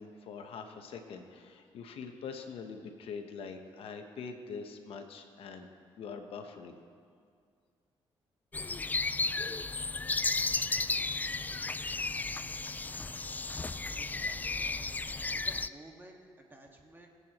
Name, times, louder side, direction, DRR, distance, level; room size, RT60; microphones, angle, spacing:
voice 1, 0.0-5.7 6.0-6.8, left 5 dB, 75° left, 5 dB, 1.0 m, -44 dB
sound 1, 8.5-15.7, left 3 dB, 15° left, 0.3 m, -34 dB
voice 2, 13.9-14.7 15.3-17.1, right 1 dB, 20° right, 1 dB, 1.7 m, -54 dB
22.5 x 8.2 x 3.0 m, 2.2 s
cardioid pair, 90°, 10 cm